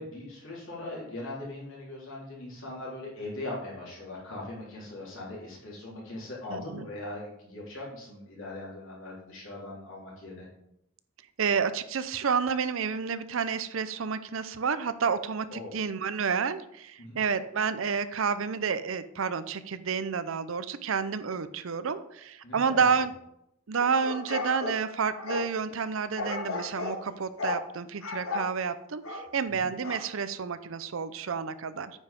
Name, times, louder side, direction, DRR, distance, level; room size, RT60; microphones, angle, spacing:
voice 1, 0.0-10.5 15.5-15.8 17.0-17.2 22.4-23.0 29.5-29.7, left 2 dB, 65° left, -5 dB, 3.8 m, -40 dB
voice 2, 6.5-6.8 11.4-23.1 23.7-31.9, right 6 dB, 65° right, 13 dB, 0.6 m, -30 dB
sound 1, 23.8-25.5 26.2-27.0 27.4-27.6 28.0-28.5 29.0-29.3 29.8-30.0, left 3 dB, 85° left, 1.6 m, -34 dB
9.1 x 5.5 x 5.2 m, 0.79 s
head